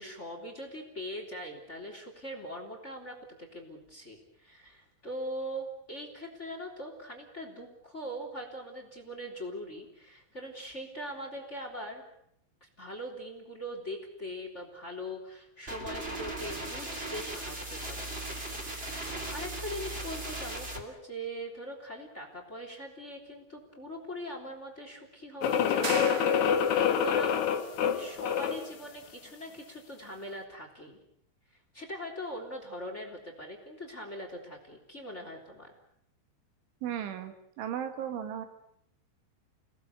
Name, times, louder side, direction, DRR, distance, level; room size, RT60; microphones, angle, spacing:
voice 1, 0.0-12.0 12.6-18.1 18.6-27.4 27.9-31.0 31.7-35.7, equal, 15° left, 4 dB, 3.2 m, -41 dB
sound 1, 15.7-20.8, right 1 dB, 15° right, 2.2 m, -38 dB
sound 2, 25.4-28.7, left 8 dB, 60° left, 2.0 m, -27 dB
sound 3, 25.8-26.9, right 8 dB, 65° right, 3.5 m, -38 dB
voice 2, 36.8-38.5, right 9 dB, 80° right, 8 dB, 4.4 m, -36 dB
29.5 x 19.0 x 8.2 m, 0.75 s
omnidirectional pair, 5.4 m